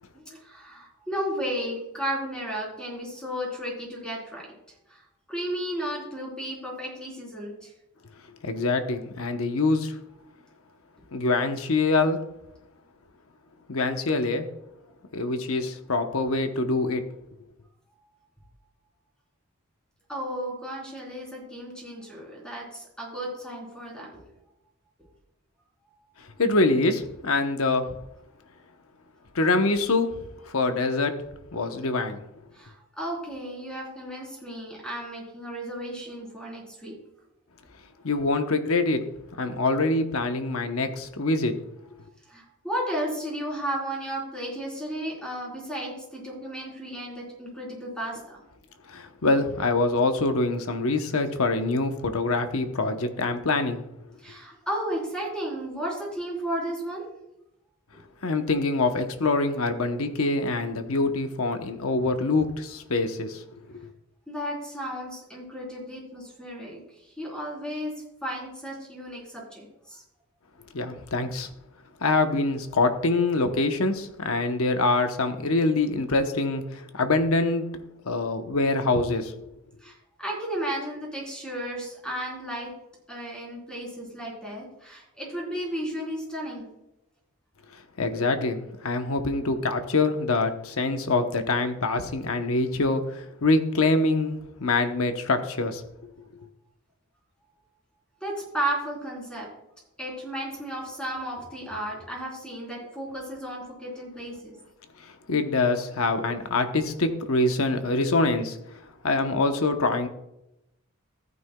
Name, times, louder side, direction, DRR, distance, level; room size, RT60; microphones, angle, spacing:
voice 1, 0.1-4.4 4.9-5.0 5.3-7.7 20.1-24.1 32.5-37.0 42.3-48.4 54.2-57.0 57.9-58.0 64.3-67.9 68.2-70.0 79.8-82.7 83.1-86.7 98.2-99.5 100.0-104.6, equal, 5° left, -3 dB, 3.7 m, -34 dB
voice 2, 8.4-9.9 11.1-12.2 13.7-14.5 15.1-17.0 26.2-27.9 29.3-30.2 30.5-31.2 31.5-32.2 38.0-39.0 39.4-41.5 48.9-53.8 58.2-63.4 70.7-71.5 72.0-77.7 78.0-79.5 88.0-95.8 105.0-108.8 109.0-110.1, left 3 dB, 70° left, 7 dB, 0.9 m, -25 dB
14.5 x 9.4 x 2.3 m, 0.86 s
head